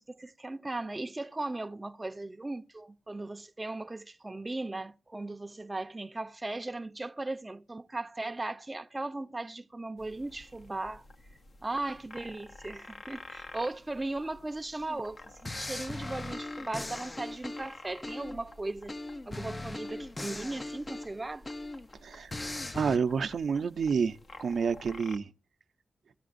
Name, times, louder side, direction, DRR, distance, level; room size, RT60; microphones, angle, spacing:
voice 1, 0.0-11.0 11.6-19.0 19.3-21.5, right 2 dB, 25° right, 0.6 m, -37 dB
sound 1, 10.0-25.2, left 2 dB, 60° left, 1.0 m, -51 dB
sound 2, 14.9-15.1 15.5-18.5 18.9-21.9 22.3-23.0, left 2 dB, 30° left, 0.5 m, -39 dB
voice 2, 22.7-25.3, right 6 dB, 75° right, 0.6 m, -29 dB
16.0 x 14.0 x 2.5 m
cardioid pair, 55°, 0 cm